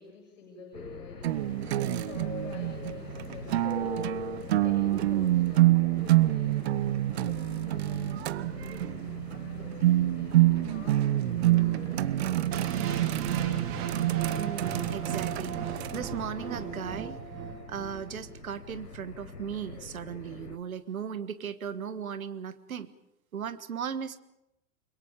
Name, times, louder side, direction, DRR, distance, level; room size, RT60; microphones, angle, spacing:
voice 1, 0.0-6.5 7.1-8.8 9.3-13.6, left 4 dB, 50° left, 2 dB, 6.6 m, -50 dB
sound 1, 0.7-20.6, left 3 dB, 90° left, 1.2 m, -43 dB
sound 2, 1.2-16.0, right 15 dB, 45° right, 0.7 m, -27 dB
sound 3, 12.5-18.5, right 6 dB, 30° right, 2.6 m, -38 dB
voice 2, 14.3-22.9 23.3-24.2, right 7 dB, 65° right, 13 dB, 1.6 m, -37 dB
29.5 x 22.5 x 5.1 m, 0.85 s
figure-of-eight pair, 105°, 46 cm